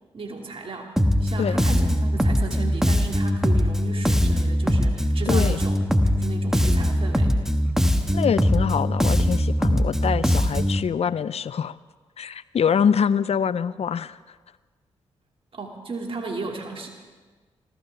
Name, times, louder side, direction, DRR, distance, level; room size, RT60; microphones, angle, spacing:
voice 1, 0.1-0.9 1.2-7.4 15.5-16.9, right 4 dB, 45° right, 1 dB, 2.3 m, -35 dB
Bass guitar, 1.0-10.8, equal, 5° right, 1.4 m, -21 dB
voice 2, 5.3-5.6 8.1-11.8 12.2-14.4, left 7 dB, 55° left, 16 dB, 0.6 m, -25 dB
25.5 x 14.5 x 3.4 m, 1.4 s
supercardioid pair, 40°, 13 cm